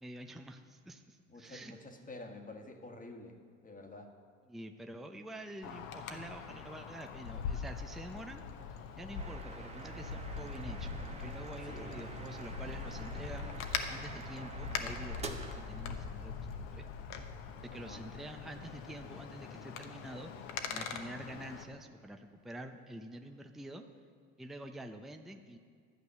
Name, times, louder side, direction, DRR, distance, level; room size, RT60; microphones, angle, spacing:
voice 1, 0.0-1.7 4.5-8.4 9.0-16.9 17.7-23.8 24.4-25.6, right 1 dB, ahead, 5 dB, 0.6 m, -47 dB
voice 2, 1.3-4.1 11.6-12.1 17.7-18.0, left 2 dB, 20° left, 4 dB, 1.5 m, -49 dB
Wind, 5.6-21.6, left 6 dB, 65° left, 1.1 m, -42 dB
sound 1, 9.2-16.6, right 4 dB, 15° right, 1.0 m, -47 dB
12.5 x 7.9 x 5.8 m, 2.1 s
hypercardioid pair, 70°, 39 cm